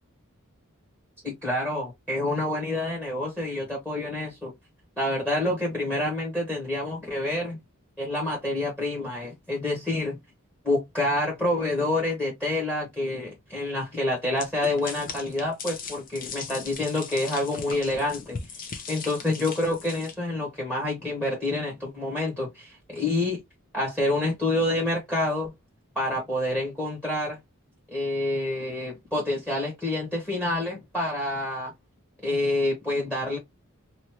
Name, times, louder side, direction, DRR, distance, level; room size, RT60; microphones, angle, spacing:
voice 1, 1.2-4.5 5.0-7.6 8.0-10.2 10.6-18.6 18.9-23.4 23.7-25.5 25.9-27.4 27.9-31.7 32.2-33.4, left 1 dB, 5° left, 1.3 m, -28 dB
sound 1, 14.4-20.1, left 5 dB, 40° left, 0.6 m, -39 dB
3.0 x 2.7 x 2.9 m
head